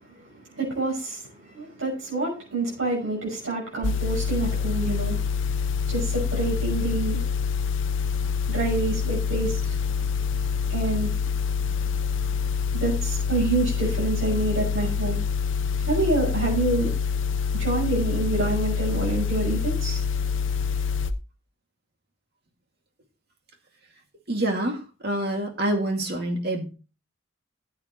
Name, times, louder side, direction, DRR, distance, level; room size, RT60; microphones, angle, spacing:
voice 1, 0.5-5.2 5.9-7.2 8.5-9.6 10.7-11.1 12.7-15.2 15.8-16.9 17.5-20.0, right 3 dB, 75° right, -3 dB, 6.2 m, -27 dB
sound 1, 3.8-21.1, left 6 dB, 65° left, 0.7 m, -26 dB
voice 2, 24.3-26.7, right 1 dB, 50° right, 3 dB, 2.2 m, -27 dB
14.0 x 8.4 x 3.0 m, 0.33 s
head